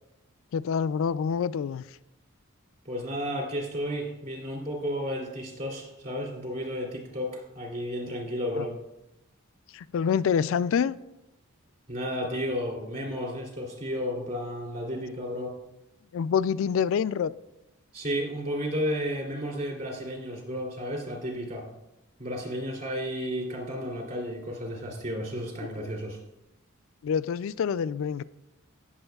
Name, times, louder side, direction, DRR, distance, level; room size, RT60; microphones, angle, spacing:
voice 1, 0.5-1.8 8.5-8.7 9.7-11.0 16.1-17.3 25.8-25.9 27.0-28.2, left 7 dB, 65° left, 0.3 m, -26 dB
voice 2, 2.8-8.7 11.9-15.5 17.9-21.6 22.2-26.2, equal, 45° right, 2.8 m, -32 dB
16.5 x 7.1 x 2.3 m
head